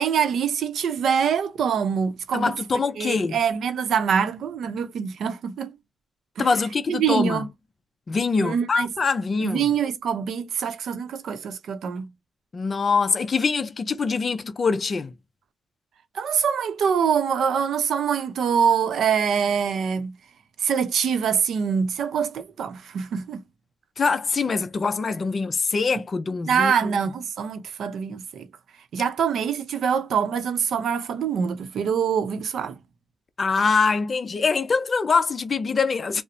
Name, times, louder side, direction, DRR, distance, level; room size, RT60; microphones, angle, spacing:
voice 1, 0.0-2.6 3.0-5.7 6.4-6.5 6.9-7.5 8.4-8.9 9.4-12.1 16.1-20.2 20.6-23.4 26.5-28.5 28.9-32.8, right 7 dB, 75° right, 0.6 m, -24 dB
voice 2, 2.3-3.4 6.4-7.4 8.1-9.7 12.5-15.1 24.0-26.9 33.4-36.2, left 4 dB, 35° left, 0.5 m, -24 dB
4.2 x 2.0 x 2.5 m
wide cardioid pair, 135°, 0 cm